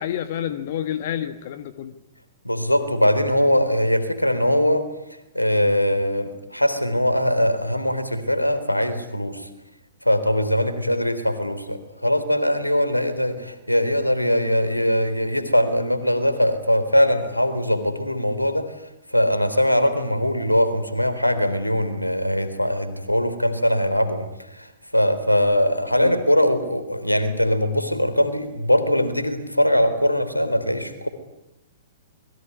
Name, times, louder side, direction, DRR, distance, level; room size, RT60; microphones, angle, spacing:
voice 1, 0.0-1.9 26.0-26.2, left 10 dB, 50° left, 11 dB, 1.7 m, -29 dB
voice 2, 2.4-4.9 5.3-9.5 10.0-18.7 19.1-24.3 24.5-24.7 24.9-31.1, equal, 90° left, 11 dB, 3.8 m, -21 dB
27.5 x 22.0 x 9.7 m, 0.89 s
figure-of-eight pair, 110°, 0 cm